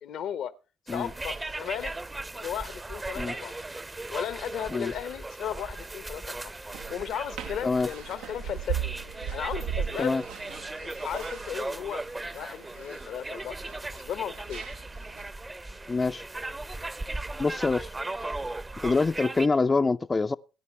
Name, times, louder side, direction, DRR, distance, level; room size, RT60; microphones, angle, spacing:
voice 1, 0.0-0.5 0.9-1.9 2.4-3.5 4.1-6.5 6.9-8.8 9.3-10.1 10.8-12.0 12.3-13.6 13.9-14.6, left 9 dB, 70° left, 0.9 m, -35 dB
sound 1, 0.9-19.5, right 2 dB, 20° right, 0.7 m, -38 dB
sound 2, 6.7-15.3, right 8 dB, 85° right, 0.8 m, -38 dB
sound 3, 8.1-13.9, left 10 dB, 90° left, 2.9 m, -56 dB
voice 2, 15.9-16.2 17.4-17.9 18.8-20.4, left 3 dB, 30° left, 0.5 m, -25 dB
18.0 x 9.8 x 3.2 m
supercardioid pair, 60°, 0 cm